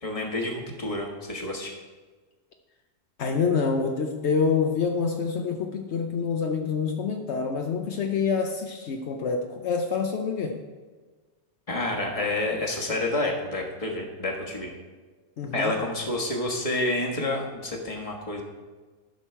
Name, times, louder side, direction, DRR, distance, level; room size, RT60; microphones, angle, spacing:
voice 1, 0.0-1.7 11.7-14.7 15.5-18.4, left 2 dB, 30° left, 0 dB, 1.4 m, -29 dB
voice 2, 3.2-10.6 15.4-15.7, left 5 dB, 70° left, 3 dB, 1.0 m, -27 dB
13.5 x 6.2 x 4.5 m, 1.4 s
omnidirectional pair, 1.2 m